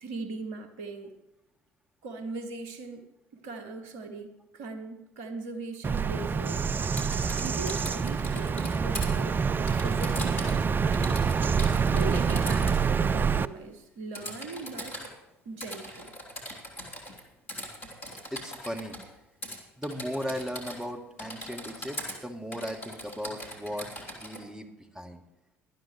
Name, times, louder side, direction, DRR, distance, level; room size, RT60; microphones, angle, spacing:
voice 1, 0.0-1.1 2.0-6.7 7.1-11.3 11.9-15.0 15.4-16.1, right 3 dB, 65° right, 9 dB, 1.2 m, -40 dB
Bird vocalization bird call bird song, 5.8-13.4, right 6 dB, 30° right, 0.4 m, -26 dB
Typing, 6.8-9.1 9.7-10.6 10.9-12.8 14.1-15.1 15.6-17.2 17.5-19.1 19.4-19.6 19.8-20.9 21.2-22.2 22.5-24.4, equal, 80° left, 2.2 m, -40 dB
voice 2, 18.3-19.0 19.8-23.9 24.2-24.7 24.9-25.2, equal, 5° right, 3 dB, 1.8 m, -36 dB
18.0 x 11.5 x 3.1 m, 0.92 s
figure-of-eight pair, 55°, 7 cm